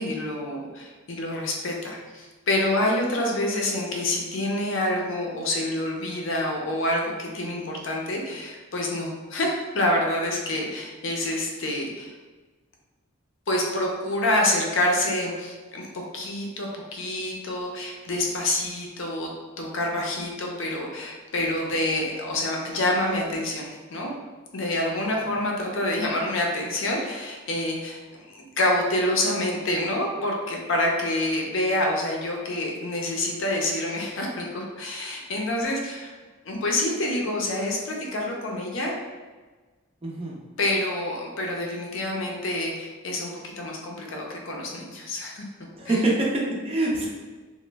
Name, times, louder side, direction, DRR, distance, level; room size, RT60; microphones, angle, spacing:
voice 1, 0.0-12.1 13.5-19.3 19.6-24.1 24.5-36.1 36.5-38.9 40.6-45.5 45.9-46.0, left 1 dB, 60° left, -1 dB, 0.5 m, -27 dB
voice 2, 40.0-40.4 45.8-47.1, right 2 dB, 25° right, -3 dB, 0.5 m, -25 dB
2.9 x 2.1 x 3.3 m, 1.3 s
head